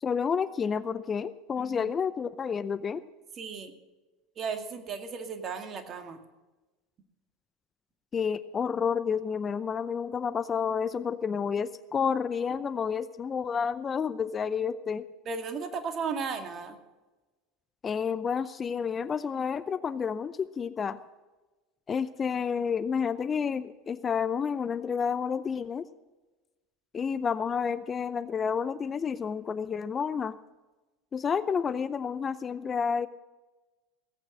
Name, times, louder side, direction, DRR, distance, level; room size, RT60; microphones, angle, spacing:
voice 1, 0.0-3.0 8.1-15.1 17.8-21.0 21.9-25.9 26.9-30.4 31.1-33.1, left 6 dB, 30° left, 14 dB, 0.6 m, -30 dB
voice 2, 1.6-1.9 3.4-3.7 4.4-6.2 15.3-16.8, right 5 dB, 40° right, 6 dB, 2.1 m, -35 dB
17.0 x 8.7 x 7.4 m, 1.2 s
hypercardioid pair, 80°, 0 cm